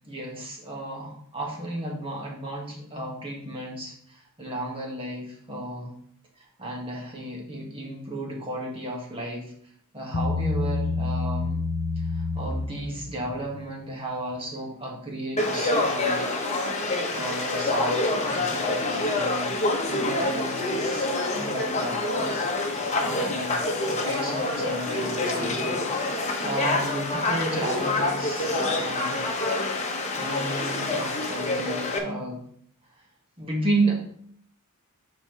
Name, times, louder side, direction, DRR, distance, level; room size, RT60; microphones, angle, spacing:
voice 1, 0.0-5.9 6.6-9.5 9.9-11.6 12.1-16.3 17.1-29.3 29.9-32.4 33.4-33.9, right 1 dB, 25° right, -3 dB, 2.1 m, -33 dB
Bass guitar, 10.1-13.5, left 3 dB, 65° left, 0.8 m, -28 dB
Conversation / Crowd, 15.4-32.0, left 2 dB, 30° left, 1.2 m, -27 dB
11.5 x 4.4 x 3.4 m, 0.62 s
head